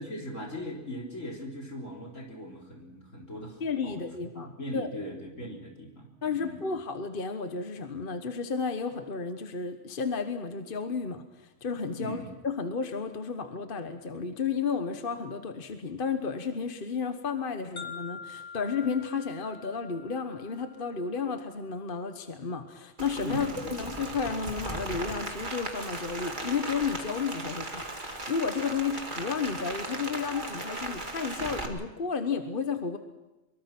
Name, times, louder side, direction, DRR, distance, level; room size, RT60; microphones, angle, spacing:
voice 1, 0.0-4.0 4.4-6.6 12.0-12.3 23.2-23.8, equal, 80° left, 0 dB, 4.2 m, -39 dB
voice 2, 3.6-4.9 6.2-33.0, left 5 dB, 45° left, 7 dB, 1.4 m, -32 dB
sound 1, 17.8-21.7, left 5 dB, 60° left, 2.1 m, -46 dB
Rain, 23.0-31.7, right 2 dB, 40° right, 2.4 m, -37 dB
24.5 x 23.5 x 6.1 m, 1.0 s
omnidirectional pair, 1.3 m